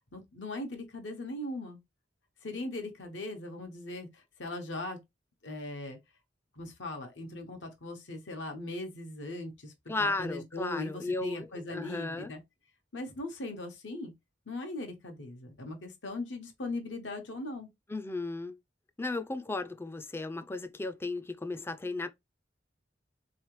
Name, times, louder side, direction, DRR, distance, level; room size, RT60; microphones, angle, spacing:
voice 1, 0.1-1.8 2.4-5.0 5.4-6.0 6.6-9.7 10.0-12.4 12.9-14.1 14.5-17.7, left 2 dB, 75° left, 1.1 m, -39 dB
voice 2, 9.9-12.3 17.9-18.6 19.0-22.1, left 3 dB, 15° left, 0.3 m, -35 dB
3.8 x 3.1 x 3.1 m
head